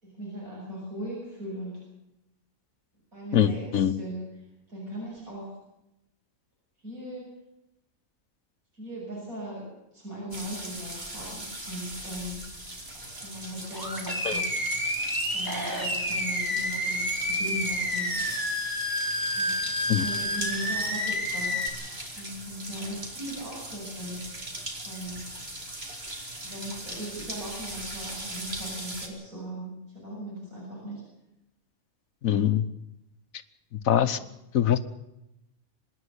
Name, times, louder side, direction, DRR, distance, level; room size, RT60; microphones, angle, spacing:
voice 1, 0.0-1.8 3.1-5.5 6.8-7.3 8.7-9.7 9.9-12.4 13.2-14.6 15.3-18.3 19.4-21.7 22.2-24.3 24.8-25.2 26.4-31.0, equal, 85° right, -5 dB, 7.6 m, -38 dB
voice 2, 3.3-3.9 14.2-14.4 19.9-20.0 32.2-32.6 33.8-34.2 34.5-34.8, left 10 dB, 80° left, 10 dB, 1.4 m, -23 dB
sound 1, 10.3-29.1, right 1 dB, 45° right, 3.5 m, -39 dB
Animal, 13.7-21.7, equal, 15° right, 3.3 m, -29 dB
25.5 x 11.0 x 9.8 m, 0.89 s
omnidirectional pair, 1.4 m